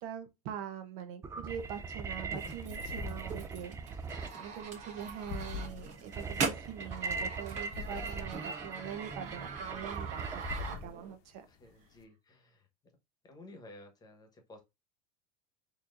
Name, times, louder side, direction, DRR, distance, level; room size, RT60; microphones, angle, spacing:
voice 1, 0.0-3.8 4.4-11.5, right 8 dB, 65° right, 0.9 m, -43 dB
sound 1, 1.2-10.7, right 4 dB, 15° right, 0.3 m, -41 dB
sound 2, 1.5-12.0, left 4 dB, 65° left, 0.9 m, -47 dB
sound 3, 2.3-11.1, right 5 dB, 35° right, 1.4 m, -41 dB
voice 2, 11.5-12.7 13.2-14.6, left 2 dB, 20° left, 1.1 m, -54 dB
4.3 x 2.9 x 2.5 m
supercardioid pair, 125°, 20 cm